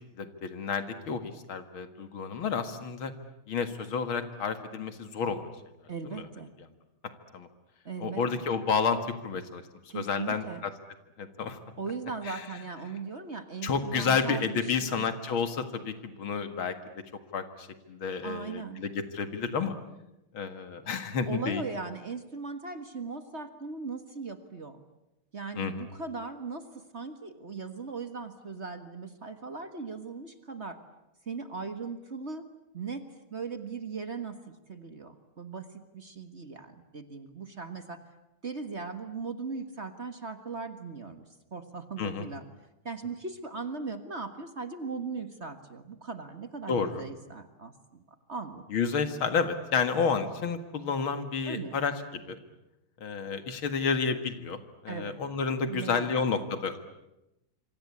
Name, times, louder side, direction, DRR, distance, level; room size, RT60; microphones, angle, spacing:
voice 1, 0.2-3.1 3.5-5.5 6.1-6.3 7.3-7.5 8.0-9.6 9.9-10.7 11.2-11.6 12.3-12.5 13.6-16.8 17.3-19.7 20.3-21.6 25.6-25.9 42.0-42.3 46.7-47.0 48.7-52.4 53.0-56.8, left 5 dB, 70° left, 9 dB, 2.6 m, -30 dB
voice 2, 5.9-6.5 7.8-8.5 9.9-10.6 11.8-15.1 18.2-18.9 21.3-24.8 25.3-30.8 31.2-32.4 32.7-33.0 33.3-38.0 38.4-42.4 42.8-48.6 51.4-51.8 54.9-55.2 55.7-56.2, right 4 dB, 35° right, 8 dB, 1.6 m, -39 dB
27.0 x 25.0 x 8.6 m, 0.92 s
omnidirectional pair, 2.3 m